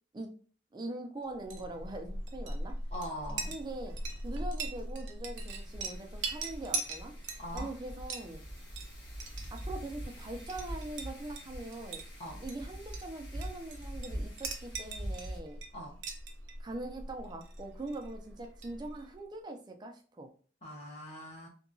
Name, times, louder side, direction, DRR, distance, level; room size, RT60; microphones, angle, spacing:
voice 1, 0.7-2.8 3.5-4.0 4.2-7.1 7.5-8.4 9.5-12.0 12.4-15.6 16.6-20.3, right 2 dB, 25° right, 4 dB, 0.4 m, -42 dB
Chink clink, 1.3-19.2, right 2 dB, 80° right, 0.5 m, -41 dB
voice 2, 2.9-3.5 7.4-7.7 12.2-12.4 15.7-16.0 20.6-21.5, equal, 35° left, -3 dB, 0.7 m, -42 dB
Wind, 5.3-15.4, equal, 55° left, 1.3 m, -44 dB
2.8 x 2.2 x 2.6 m, 0.41 s
head